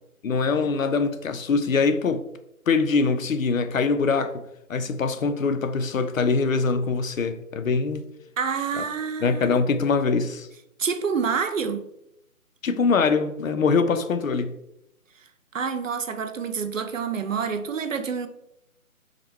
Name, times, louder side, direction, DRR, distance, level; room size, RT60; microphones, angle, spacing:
voice 1, 0.2-2.2 2.7-4.4 4.7-8.1 8.8-8.9 9.2-10.5 12.6-14.5, left 4 dB, 65° left, 0.6 m, -23 dB
voice 2, 8.4-9.6 10.8-11.9 15.5-18.3, right 6 dB, 60° right, 0.5 m, -27 dB
5.0 x 2.2 x 4.2 m
hypercardioid pair, 170°, 44 cm